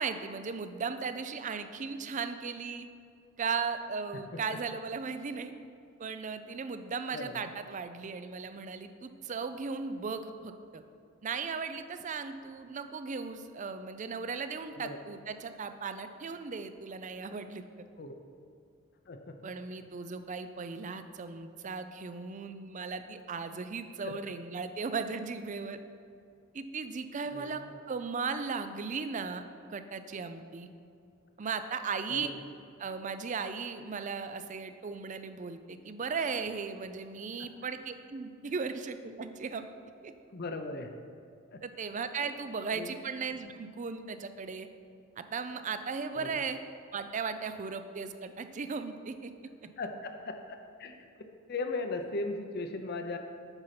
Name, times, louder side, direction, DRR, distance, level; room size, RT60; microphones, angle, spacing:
voice 1, 0.0-2.9 3.4-5.5 6.0-10.8 11.2-17.6 19.4-25.8 26.5-27.6 27.9-29.4 29.7-30.7 31.4-32.3 32.8-39.7 40.0-40.1 41.6-44.7 45.2-46.6 46.9-49.3, right 5 dB, 40° right, 9 dB, 0.4 m, -37 dB
voice 2, 7.1-7.4 14.8-15.0 18.0-18.1 19.1-19.4 24.0-24.1 27.3-27.8 32.1-32.4 40.3-40.9 41.5-41.6 42.7-42.9 46.1-46.4 49.8-51.0 51.5-53.2, left 3 dB, 50° left, 6 dB, 0.7 m, -38 dB
8.0 x 5.5 x 5.8 m, 2.4 s
head